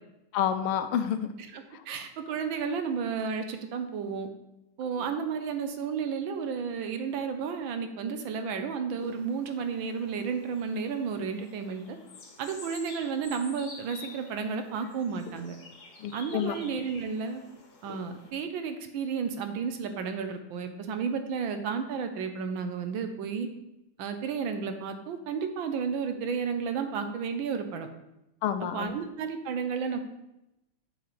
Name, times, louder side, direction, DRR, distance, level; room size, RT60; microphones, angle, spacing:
voice 1, 0.3-1.3 1.7-1.8 16.0-16.6 28.4-28.9, left 9 dB, 85° left, 9 dB, 1.5 m, -29 dB
voice 2, 1.5-4.3 4.8-12.0 12.4-15.6 16.1-17.4 17.8-23.5 24.0-27.9 28.7-30.0, right 6 dB, 70° right, 7 dB, 1.4 m, -32 dB
sound 1, 9.0-18.3, left 3 dB, 50° left, 1.7 m, -49 dB
8.0 x 7.6 x 3.2 m, 0.89 s
omnidirectional pair, 2.4 m